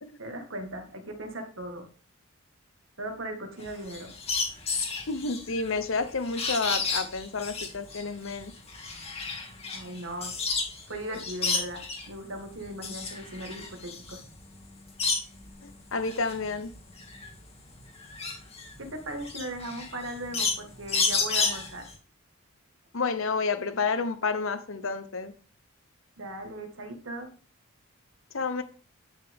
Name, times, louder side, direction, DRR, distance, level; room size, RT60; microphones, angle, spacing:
voice 1, 0.2-1.9 3.0-4.1 9.7-10.3 10.9-14.2 18.8-21.9 26.2-27.3, right 1 dB, 60° right, 1.9 m, -38 dB
sound 1, 3.6-10.8 11.1-12.1 12.6-15.5 15.9-21.9, left 4 dB, 30° left, 2.3 m, -31 dB
voice 2, 5.1-8.5 15.6-16.7 22.9-25.3 28.3-28.6, left 4 dB, 65° left, 0.8 m, -30 dB
10.5 x 6.4 x 3.6 m
head